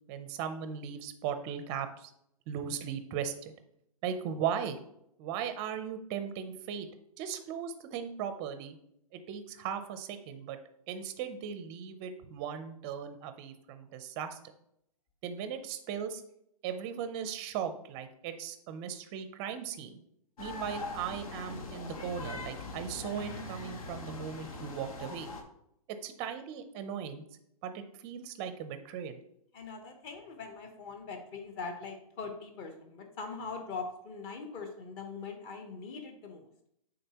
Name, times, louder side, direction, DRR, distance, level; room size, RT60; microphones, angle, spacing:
voice 1, 0.1-2.1 2.5-3.5 4.0-4.8 5.2-6.9 7.2-8.8 9.1-10.6 10.9-14.4 15.2-16.2 16.6-20.0 20.4-25.3 25.9-27.2 27.6-29.2, right 8 dB, 25° right, 9 dB, 0.6 m, -38 dB
sound 1, 20.4-25.4, left 3 dB, 65° left, 1.2 m, -41 dB
voice 2, 29.5-36.5, left 4 dB, 25° left, 4 dB, 1.0 m, -42 dB
8.9 x 3.8 x 2.9 m, 0.75 s
hypercardioid pair, 150°, 20 cm